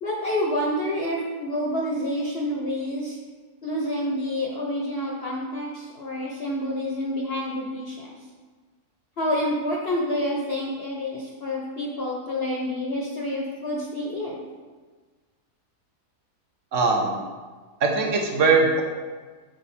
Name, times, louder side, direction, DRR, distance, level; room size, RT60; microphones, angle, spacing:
voice 1, 0.0-3.2 3.6-8.1 9.2-14.4, left 1 dB, 50° left, -2 dB, 0.8 m, -28 dB
voice 2, 16.7-17.1 17.8-18.8, right 4 dB, 55° right, 1 dB, 1.1 m, -20 dB
6.3 x 4.5 x 4.2 m, 1.4 s
omnidirectional pair, 1.7 m